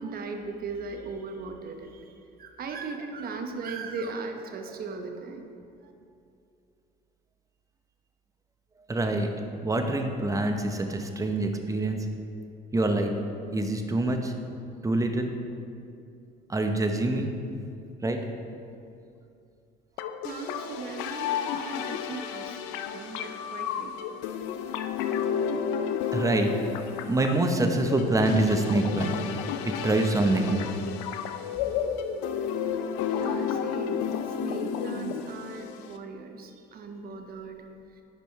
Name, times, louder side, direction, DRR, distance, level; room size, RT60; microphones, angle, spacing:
voice 1, 0.0-2.1 2.4-5.5 5.8-5.9 20.2-22.6 22.9-23.9 33.1-37.6, right 4 dB, 50° right, 5 dB, 0.9 m, -38 dB
voice 2, 8.9-9.3 9.6-12.1 12.7-13.1 13.5-14.3 14.8-15.3 16.5-17.3 18.0-18.3 26.1-26.7 27.1-29.2 29.6-30.7, right 2 dB, 15° right, 5 dB, 0.8 m, -25 dB
sound 1, 20.0-36.0, left 7 dB, 85° left, 0.5 m, -32 dB
10.5 x 5.3 x 3.1 m, 2.5 s
supercardioid pair, 80°, 20 cm